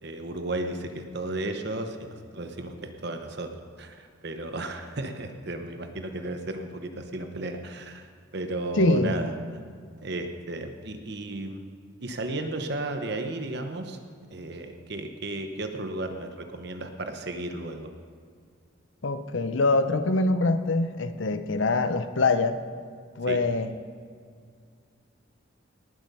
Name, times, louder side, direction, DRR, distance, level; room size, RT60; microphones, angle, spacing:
voice 1, 0.0-3.5 3.8-9.3 10.0-11.6 12.0-14.0 14.3-17.9 23.3-23.4, right 2 dB, 55° right, 6 dB, 0.9 m, -34 dB
voice 2, 8.8-9.1 19.0-22.6 23.2-23.7, left 3 dB, 70° left, 10 dB, 0.7 m, -24 dB
18.5 x 7.6 x 5.5 m, 2.1 s
head